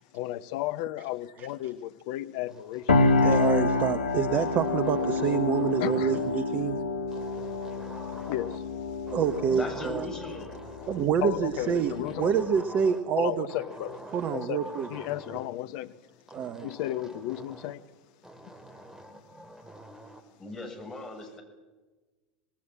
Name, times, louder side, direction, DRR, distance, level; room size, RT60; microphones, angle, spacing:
voice 1, 0.1-2.9 5.8-6.3 7.1-9.1 11.2-12.3 13.2-14.0 14.3-16.0 16.6-17.8, left 14 dB, 50° left, 0.8 m, -34 dB
sound 1, 2.5-4.0 4.4-6.5 7.1-8.8 9.1-11.1 11.5-13.1 13.5-15.5 16.3-17.8 18.2-20.3, right 1 dB, 10° right, 2.5 m, -46 dB
sound 2, 2.9-12.6, left 3 dB, 80° left, 1.5 m, -28 dB
voice 2, 3.2-6.8 9.1-10.0 10.9-13.5 14.1-14.9 16.3-16.7, right 7 dB, 35° right, 1.1 m, -27 dB
voice 3, 9.5-10.5 20.4-21.4, left 2 dB, 15° left, 6.7 m, -38 dB
25.5 x 19.5 x 7.5 m
figure-of-eight pair, 80°, 5 cm